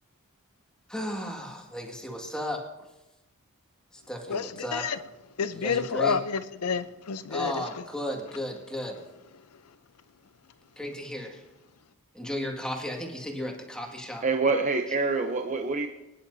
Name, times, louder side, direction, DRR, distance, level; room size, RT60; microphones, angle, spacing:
voice 1, 0.9-2.6 3.9-4.9 5.6-6.2 7.3-9.0 10.8-11.4 12.1-14.2, left 1 dB, 5° left, 1.9 m, -34 dB
voice 2, 4.3-5.0 5.4-7.6, left 6 dB, 80° left, 0.6 m, -29 dB
voice 3, 14.2-15.9, right 3 dB, 35° right, 0.7 m, -26 dB
25.0 x 10.5 x 2.7 m
head